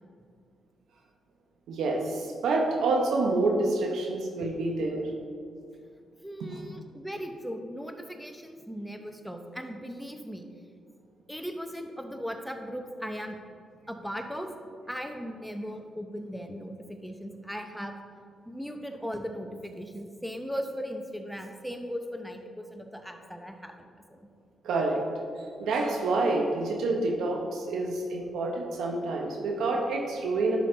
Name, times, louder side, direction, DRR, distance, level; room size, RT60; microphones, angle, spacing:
voice 1, 1.7-5.1 24.6-25.0 25.4-30.6, right 2 dB, 85° right, 0 dB, 1.0 m, -28 dB
voice 2, 6.2-10.4 11.3-13.4 13.9-14.5 14.9-17.9 18.5-24.3, equal, ahead, 4 dB, 0.9 m, -38 dB
11.5 x 5.2 x 3.9 m, 2.2 s
cardioid pair, 70°, 0 cm